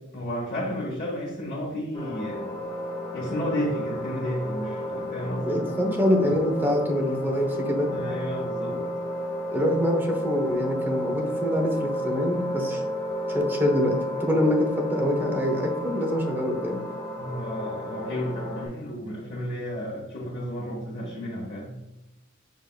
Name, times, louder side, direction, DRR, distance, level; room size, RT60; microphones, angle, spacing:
voice 1, 0.1-2.5 3.1-5.6 7.9-8.8 17.2-21.8, equal, 40° left, -7 dB, 1.2 m, -32 dB
sound 1, 1.9-18.7, equal, 20° left, 1.4 m, -32 dB
voice 2, 5.4-7.9 8.7-8.8 9.5-12.8 13.3-16.8, left 1 dB, 10° right, 2 dB, 0.8 m, -25 dB
6.5 x 3.6 x 2.3 m, 0.95 s
head